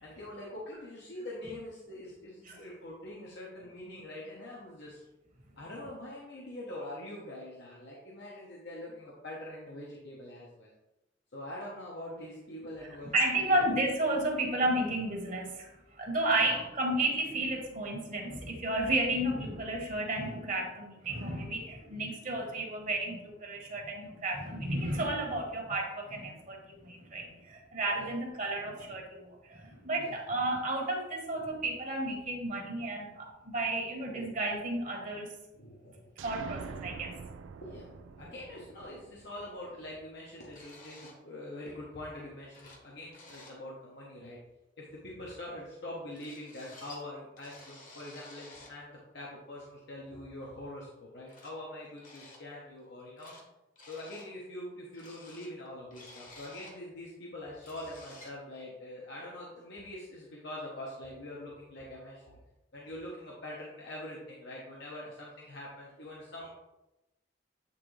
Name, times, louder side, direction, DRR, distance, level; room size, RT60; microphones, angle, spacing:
voice 1, 0.0-5.0 5.6-10.7 11.3-13.1 13.5-13.6 16.4-16.6 22.4-22.6 28.0-28.1 30.0-30.2 34.3-34.4 35.5-36.1 37.6-37.9 38.2-44.4 44.8-53.3 53.8-62.4 62.7-66.5, left 1 dB, 65° left, -4 dB, 1.1 m, -44 dB
voice 2, 13.1-15.7 16.0-35.3 36.2-37.1, right 2 dB, 45° right, 0 dB, 1.3 m, -32 dB
sound 1, 36.2-39.9, right 5 dB, 90° right, 0.4 m, -45 dB
sound 2, 40.5-41.2 42.2-42.3 42.5-42.9 43.1-43.6 46.1-47.0 47.4-48.8 50.2-50.3 51.3-51.5 52.0-52.4 52.8-53.4 53.8-54.3 54.9-56.8 57.2-57.3 57.5-58.4, left 2 dB, 45° left, 1.3 m, -52 dB
8.6 x 3.6 x 3.3 m, 0.96 s
head